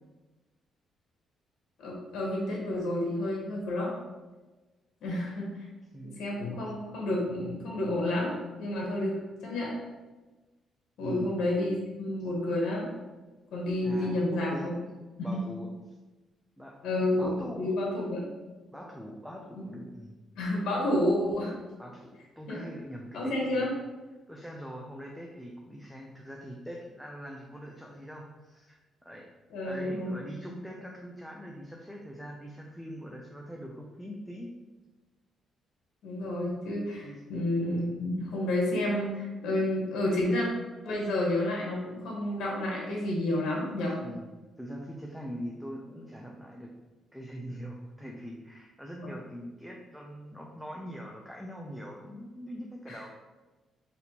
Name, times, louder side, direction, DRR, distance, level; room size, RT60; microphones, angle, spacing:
voice 1, 1.8-3.9 5.0-5.7 6.0-9.7 11.0-12.9 13.5-14.7 15.2-15.4 16.8-17.3 17.6-18.2 20.4-21.5 22.5-22.6 23.1-23.7 29.5-30.2 36.0-40.5 40.8-44.0 49.0-49.1 52.9-53.1, left 1 dB, 75° left, -3 dB, 0.9 m, -30 dB
voice 2, 11.0-11.3 13.8-14.9 15.2-15.7 16.6-16.9 17.2-17.8 18.7-20.1 21.8-23.7 24.3-28.8 29.0-29.3 29.6-34.5 37.0-37.2 44.0-44.2 44.6-46.7 47.1-53.1, equal, ahead, -2 dB, 0.4 m, -42 dB
4.2 x 2.6 x 2.8 m, 1.2 s
cardioid pair, 90°, 0 cm